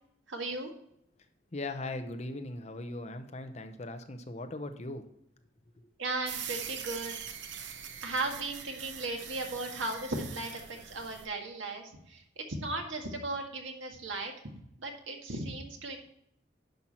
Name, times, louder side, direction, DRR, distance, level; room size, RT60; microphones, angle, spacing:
voice 1, 0.3-0.7 6.0-7.2 8.0-14.3 14.8-16.0, right 2 dB, 85° right, 2 dB, 1.8 m, -36 dB
voice 2, 1.5-5.1, left 2 dB, 35° left, 7 dB, 0.8 m, -39 dB
sound 1, 6.2-11.3, right 8 dB, 70° right, 0.9 m, -43 dB
10.5 x 5.8 x 4.3 m, 0.75 s
head